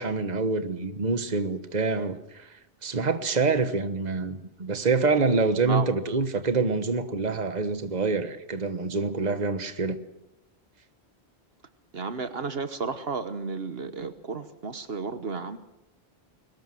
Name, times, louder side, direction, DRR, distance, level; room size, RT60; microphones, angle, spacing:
voice 1, 0.0-2.5 2.8-10.0, right 4 dB, 40° right, 1.4 m, -26 dB
voice 2, 5.6-5.9 11.9-15.6, right 4 dB, 70° right, 1.4 m, -33 dB
22.5 x 19.5 x 7.7 m
omnidirectional pair, 1.1 m